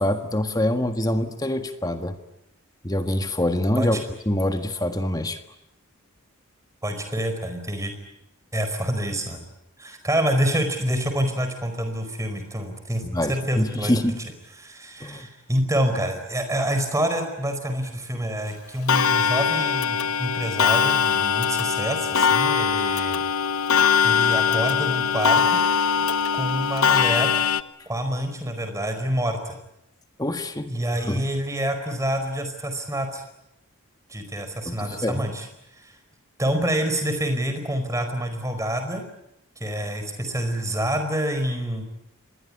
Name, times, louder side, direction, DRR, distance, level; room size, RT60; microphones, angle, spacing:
voice 1, 0.0-2.2 2.8-5.4 13.0-14.2 15.0-15.3 30.2-31.2 34.6-35.2, left 1 dB, 15° left, 8 dB, 1.6 m, -25 dB
voice 2, 6.8-7.9 8.5-9.4 9.8-13.9 14.6-23.2 24.0-25.6 26.3-27.3 27.9-29.6 30.7-33.2 34.1-35.5 35.8-35.9 36.4-39.0 39.6-41.8, right 1 dB, 15° right, 7 dB, 4.7 m, -27 dB
Clock, 18.9-27.6, left 7 dB, 70° left, 1.0 m, -21 dB
26.5 x 21.0 x 10.0 m, 0.82 s
head